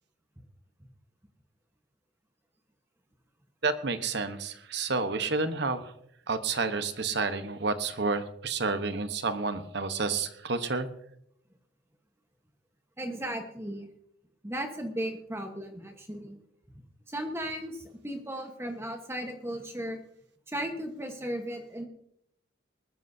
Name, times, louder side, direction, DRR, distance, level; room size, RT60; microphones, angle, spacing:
voice 1, 3.6-5.9 6.3-10.9, right 4 dB, 60° right, 10 dB, 1.0 m, -30 dB
voice 2, 13.0-13.9 14.4-16.4 17.1-20.0 20.5-21.9, equal, 15° right, 4 dB, 1.2 m, -36 dB
20.5 x 13.0 x 2.7 m, 0.73 s
head